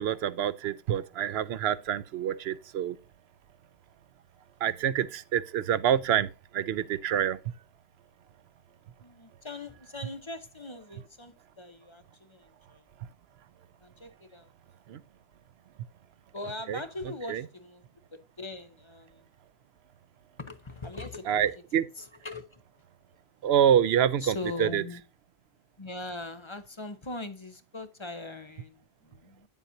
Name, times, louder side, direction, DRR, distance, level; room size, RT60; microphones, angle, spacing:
voice 1, 0.0-3.0 4.6-7.4 14.9-15.0 16.7-16.8 17.3-17.4 21.3-21.8 23.4-24.8, right 9 dB, 85° right, 0.9 m, -26 dB
voice 2, 9.0-12.8 13.8-14.5 16.3-17.8 18.1-19.3 20.4-22.6 24.2-25.0 25.8-29.5, left 2 dB, 30° left, 0.8 m, -41 dB
9.6 x 7.2 x 2.7 m
omnidirectional pair, 1.0 m